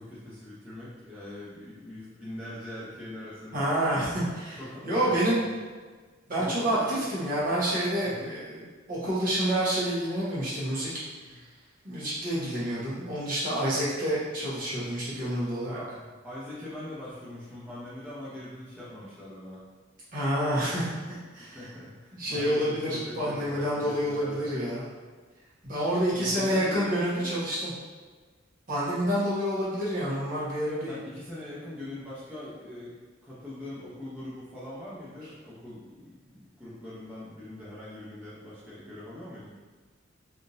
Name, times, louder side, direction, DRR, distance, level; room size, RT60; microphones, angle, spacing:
voice 1, 0.0-5.6 6.4-7.1 8.0-8.3 11.2-11.4 15.6-19.7 21.4-24.9 26.1-27.3 30.9-39.6, left 1 dB, 5° right, -11 dB, 0.6 m, -42 dB
voice 2, 3.5-4.6 4.8-5.4 6.3-10.9 11.8-15.8 20.1-21.6 22.1-24.8 25.6-27.7 28.7-30.9, equal, 45° right, -9 dB, 1.2 m, -28 dB
3.5 x 2.6 x 2.5 m, 1.4 s
head